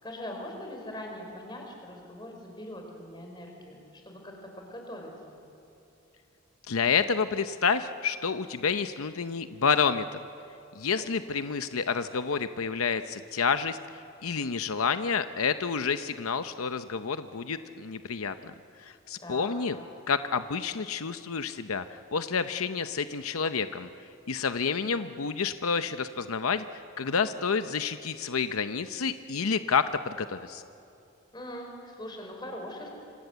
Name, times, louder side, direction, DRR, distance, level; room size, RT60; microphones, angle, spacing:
voice 1, 0.0-5.4 11.0-11.1 19.2-19.9 31.3-32.9, left 1 dB, 20° left, 2 dB, 4.9 m, -42 dB
voice 2, 6.7-10.2 10.8-13.8 14.2-18.5 18.8-19.8 20.1-23.9 24.3-30.6, left 5 dB, 85° left, 10 dB, 0.7 m, -29 dB
27.5 x 26.0 x 8.1 m, 2.7 s
head